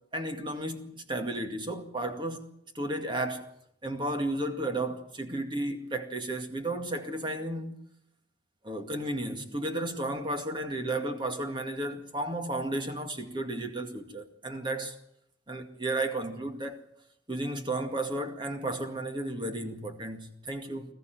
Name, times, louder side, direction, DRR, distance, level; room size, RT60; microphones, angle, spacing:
voice 1, 0.1-2.5 2.7-3.5 3.8-7.8 8.6-15.0 15.5-16.8 17.3-20.9, right 1 dB, 25° right, 2.2 m, -33 dB
20.5 x 14.5 x 9.3 m
head